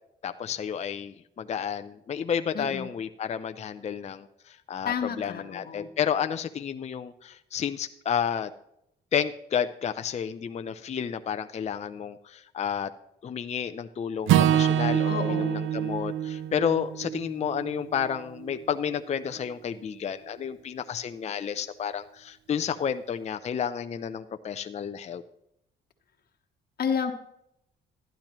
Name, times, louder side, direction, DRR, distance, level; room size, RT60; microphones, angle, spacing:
voice 1, 0.2-8.5 9.1-12.9 13.2-25.2, left 8 dB, 35° left, 8 dB, 0.5 m, -31 dB
voice 2, 2.5-2.9 4.8-5.9 15.1-15.6 26.8-27.1, left 6 dB, 50° left, 4 dB, 1.1 m, -31 dB
Acoustic guitar / Strum, 14.3-18.6, right 10 dB, 75° right, 0.5 m, -26 dB
12.0 x 10.5 x 3.0 m, 0.77 s
cardioid pair, 90°, 20 cm